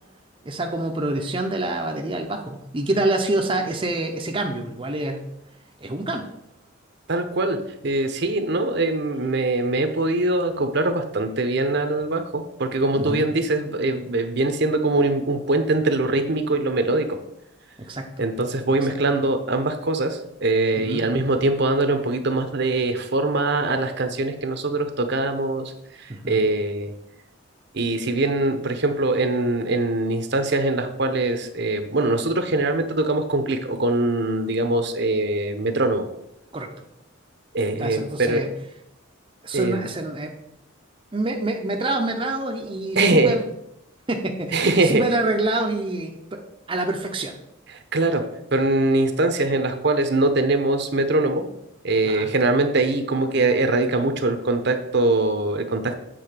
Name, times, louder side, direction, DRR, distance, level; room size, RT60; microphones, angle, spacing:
voice 1, 0.4-5.3 5.8-6.3 13.0-13.3 17.8-18.2 20.8-21.0 26.1-26.4 36.5-36.7 37.8-38.5 39.4-40.3 41.1-43.4 44.1-46.4 46.7-47.4 52.1-52.3, right 2 dB, 25° right, 2 dB, 0.7 m, -26 dB
voice 2, 7.1-7.6 7.8-17.2 18.2-25.7 26.0-26.9 27.7-36.1 37.5-38.4 39.5-39.9 43.0-43.4 44.5-45.0 47.9-48.2 48.5-51.4 51.8-55.9, right 2 dB, 55° right, 7 dB, 0.8 m, -22 dB
7.7 x 3.8 x 6.7 m, 0.80 s
head